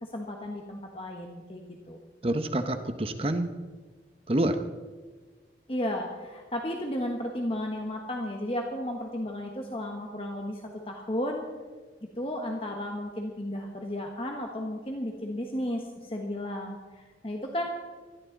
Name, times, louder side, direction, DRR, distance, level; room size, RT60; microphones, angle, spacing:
voice 1, 0.0-2.0 5.7-11.5 12.2-17.7, left 1 dB, 30° left, 2 dB, 1.3 m, -34 dB
voice 2, 2.2-3.5 4.3-4.6, right 1 dB, 35° right, 8 dB, 0.8 m, -27 dB
20.0 x 13.5 x 4.0 m, 1.4 s
head